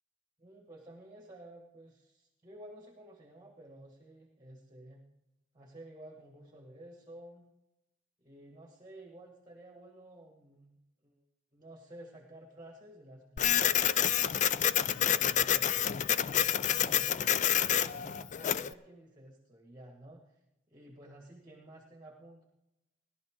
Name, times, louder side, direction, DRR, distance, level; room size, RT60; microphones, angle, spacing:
voice 1, 0.4-5.0 5.5-7.4 8.2-10.8 11.0-11.2 11.5-13.8 14.7-20.4 20.7-22.4, right 1 dB, 20° right, 1 dB, 1.5 m, -53 dB
Printer, 13.4-18.7, left 10 dB, 40° left, 0.3 m, -28 dB
18.0 x 11.5 x 3.7 m, 0.94 s
head